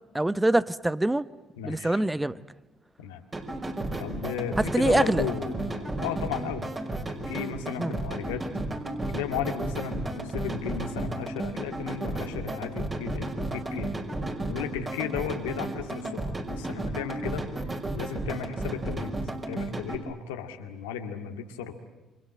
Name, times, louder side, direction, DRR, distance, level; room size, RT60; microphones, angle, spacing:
voice 1, 0.1-1.2 1.6-2.4 4.7-5.3 7.8-7.9, right 1 dB, 10° right, 1.0 m, -24 dB
voice 2, 1.6-2.0 3.0-3.2 4.0-6.8 7.1-8.5 9.0-13.9 14.5-17.4 17.9-19.2 19.5-21.7, left 8 dB, 90° left, 2.1 m, -35 dB
sound 1, 3.3-20.0, right 2 dB, 30° right, 5.4 m, -33 dB
29.0 x 25.5 x 7.8 m
hypercardioid pair, 60°, 0 cm